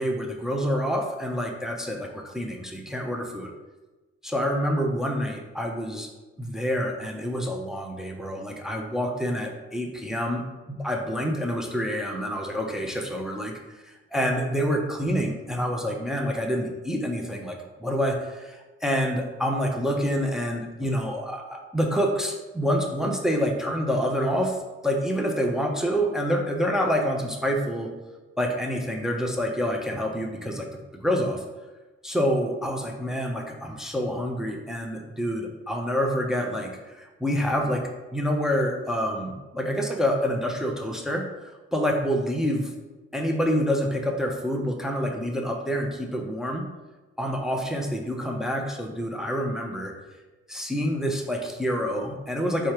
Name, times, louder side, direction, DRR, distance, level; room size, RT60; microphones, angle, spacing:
voice 1, 0.0-3.5 4.2-6.1 6.4-27.9 28.4-31.4 32.0-42.7 43.1-46.7 47.2-49.9 50.5-52.7, equal, ahead, 2 dB, 0.7 m, -27 dB
4.2 x 2.4 x 4.7 m, 1.2 s
hypercardioid pair, 50°, 34 cm